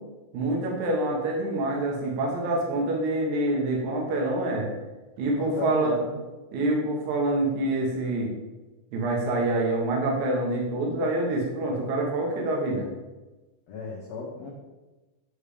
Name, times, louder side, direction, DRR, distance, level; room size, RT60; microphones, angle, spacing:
voice 1, 0.3-4.7 5.2-6.0 6.5-8.3 8.9-12.9, right 2 dB, 60° right, -1 dB, 2.5 m, -26 dB
voice 2, 5.4-6.1 13.7-14.5, left 4 dB, 65° left, -3 dB, 1.8 m, -35 dB
10.0 x 3.6 x 5.0 m, 1.1 s
omnidirectional pair, 4.3 m